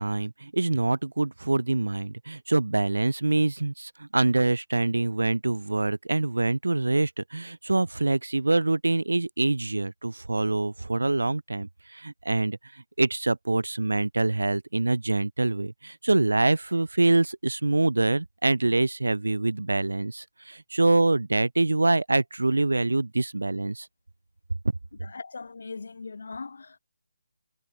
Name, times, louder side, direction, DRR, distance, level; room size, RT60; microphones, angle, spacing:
voice 1, 0.0-12.6 13.0-23.9, right 2 dB, 80° right, 0.4 m, -25 dB
voice 2, 25.0-26.8, left 4 dB, 65° left, 0.8 m, -39 dB
figure-of-eight pair, 155°, 0 cm